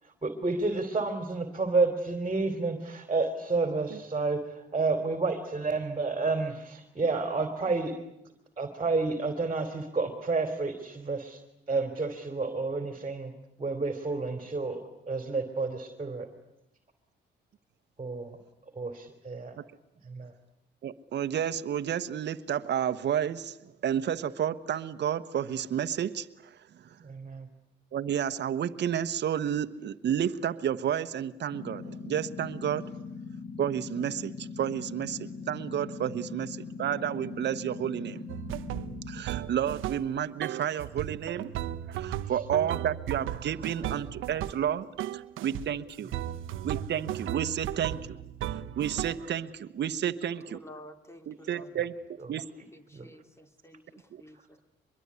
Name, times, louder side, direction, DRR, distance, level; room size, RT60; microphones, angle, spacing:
voice 1, 0.0-8.0 8.6-11.4 11.7-13.3 13.6-14.8 15.1-16.3 18.0-18.4 18.7-19.6 20.0-20.3 27.0-27.5 42.2-42.4 43.6-43.9 46.1-46.2 51.4-51.8 52.2-52.3 52.9-53.1 54.3-54.6, right 3 dB, 30° right, 7 dB, 3.2 m, -30 dB
voice 2, 20.8-26.3 27.9-32.8 33.6-38.2 39.1-41.5 41.9-44.9 45.1-46.2 46.6-48.0 48.8-50.6 51.3-52.0 52.3-52.4 54.1-54.2, right 9 dB, 60° right, 10 dB, 1.2 m, -31 dB
sound 1, 31.5-39.2, left 4 dB, 35° left, 2.2 m, -41 dB
sound 2, 38.3-40.1 40.4-44.7 45.0-45.7 46.1-49.3, right 12 dB, 90° right, 1.0 m, -36 dB
voice 3, 50.5-51.7 52.7-54.6, equal, 15° left, 8 dB, 2.7 m, -51 dB
24.0 x 22.5 x 9.7 m, 0.83 s
cardioid pair, 90°, 20 cm